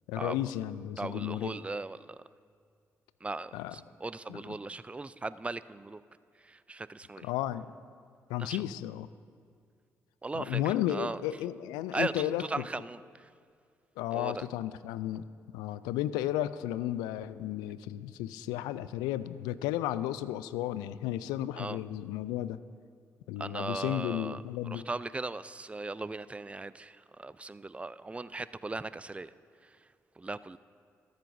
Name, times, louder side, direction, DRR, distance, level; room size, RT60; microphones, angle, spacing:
voice 1, 0.1-1.6 3.5-3.7 4.3-4.4 7.2-7.7 8.3-9.1 10.3-12.4 14.0-15.3 15.5-22.6 23.3-24.8, left 13 dB, 80° left, 15 dB, 0.3 m, -33 dB
voice 2, 1.0-2.2 3.2-6.0 6.4-7.3 8.4-8.6 10.2-11.2 11.9-13.3 14.1-14.5 21.6-21.8 23.4-29.3 30.2-30.6, right 3 dB, 15° right, 16 dB, 0.4 m, -38 dB
14.0 x 13.0 x 2.6 m, 2.2 s
hypercardioid pair, 40°, 7 cm